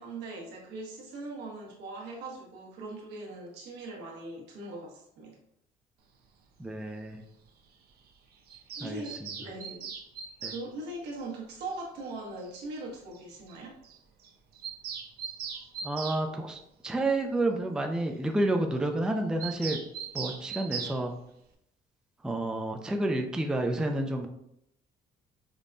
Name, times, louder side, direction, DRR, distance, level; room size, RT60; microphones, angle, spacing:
voice 1, 0.0-5.4 8.7-9.1 9.4-9.9 10.4-13.7, right 2 dB, 80° right, -2 dB, 1.1 m, -40 dB
voice 2, 6.6-7.2 8.8-9.3 10.4-10.5 15.8-19.8 20.1-21.1 22.2-24.3, right 1 dB, 5° right, 4 dB, 0.3 m, -30 dB
Bird vocalization bird call bird song, 8.5-10.6 12.1-12.2 12.4-12.5 12.7-12.8 13.1-13.2 13.5-13.6 13.8-14.0 14.2-16.2 19.4-21.0, right 6 dB, 65° right, 0.6 m, -39 dB
5.2 x 2.2 x 2.5 m, 0.76 s
cardioid pair, 110°, 17 cm